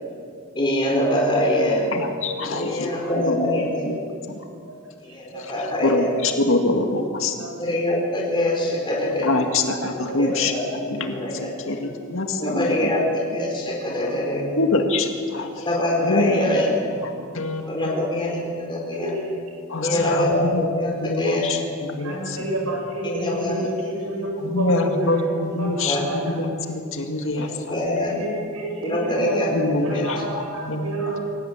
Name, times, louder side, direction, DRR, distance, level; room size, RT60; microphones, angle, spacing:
voice 1, 0.6-1.8 2.4-3.8 5.1-6.1 7.6-9.3 10.2-10.6 11.1-11.5 12.4-14.6 15.5-16.7 17.7-19.2 19.8-21.5 23.0-23.7 25.9-26.0 27.3-28.1 28.8-29.5 29.9-30.1, left 1 dB, 25° left, -2 dB, 4.3 m, -24 dB
voice 2, 1.9-4.0 4.3-4.4 5.6-7.3 9.2-12.9 14.6-15.7 16.0-16.5 17.0-18.0 19.7-20.7 21.0-22.5 24.4-27.8 29.5-31.2, left 2 dB, 65° left, 4 dB, 2.1 m, -25 dB
voice 3, 17.8-18.1 19.0-19.3 19.8-20.3 22.0-24.3 24.6-25.3 25.6-26.2 28.1-29.5 29.8-31.2, right 1 dB, 75° right, -1 dB, 7.2 m, -30 dB
23.5 x 17.0 x 9.0 m, 2.3 s
head